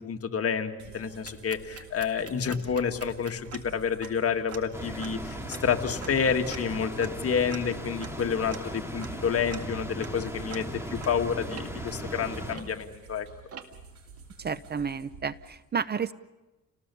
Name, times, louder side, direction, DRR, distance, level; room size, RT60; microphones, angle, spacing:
voice 1, 0.0-13.3, left 6 dB, 50° left, 6 dB, 1.8 m, -29 dB
sound 1, 0.8-15.6, right 5 dB, 70° right, 4.6 m, -50 dB
sound 2, 1.1-13.1 13.5-14.0, right 7 dB, 50° right, 2.0 m, -47 dB
sound 3, 4.7-12.6, equal, 10° right, 3.3 m, -37 dB
voice 2, 14.4-16.1, right 6 dB, 35° right, 17 dB, 0.7 m, -31 dB
29.5 x 18.5 x 7.0 m, 1.1 s
cardioid pair, 90°, 30 cm